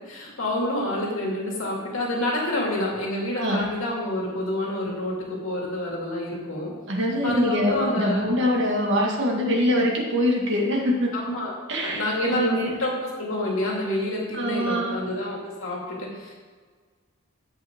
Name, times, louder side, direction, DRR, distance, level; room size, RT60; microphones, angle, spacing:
voice 1, 0.1-6.7 7.2-8.3 11.1-11.5 11.8-16.3, left 1 dB, 70° left, -2 dB, 2.5 m, -28 dB
voice 2, 6.9-11.1 11.7-12.8 14.3-15.1, left 1 dB, 60° right, -1 dB, 2.0 m, -24 dB
11.0 x 8.1 x 3.7 m, 1.5 s
head